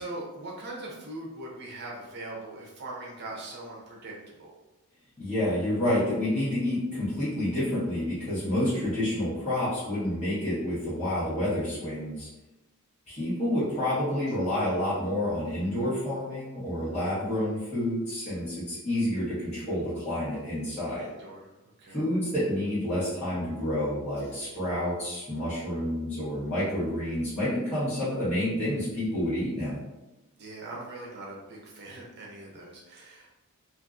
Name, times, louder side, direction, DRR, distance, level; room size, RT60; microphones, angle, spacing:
voice 1, 0.0-4.5 13.8-14.0 21.0-21.5 21.8-22.0 30.4-33.3, right 2 dB, 50° right, -2 dB, 0.6 m, -41 dB
voice 2, 5.2-12.3 13.1-21.1 21.9-29.8, left 1 dB, 30° left, -13 dB, 1.2 m, -29 dB
2.8 x 2.5 x 2.4 m, 1.0 s
head